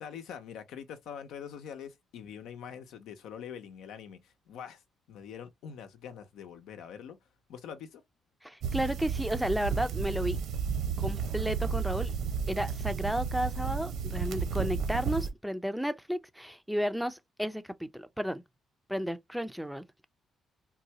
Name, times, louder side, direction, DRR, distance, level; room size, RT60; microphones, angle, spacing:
voice 1, 0.0-4.8 5.1-7.2 7.5-8.0, left 8 dB, 85° left, 0.7 m, -44 dB
voice 2, 8.4-10.4 11.0-12.1 12.5-18.4 18.9-20.0, equal, ahead, 0.4 m, -33 dB
sound 1, 8.6-15.3, right 6 dB, 80° right, 0.9 m, -32 dB
3.8 x 2.3 x 2.8 m
cardioid pair, 90°, 0 cm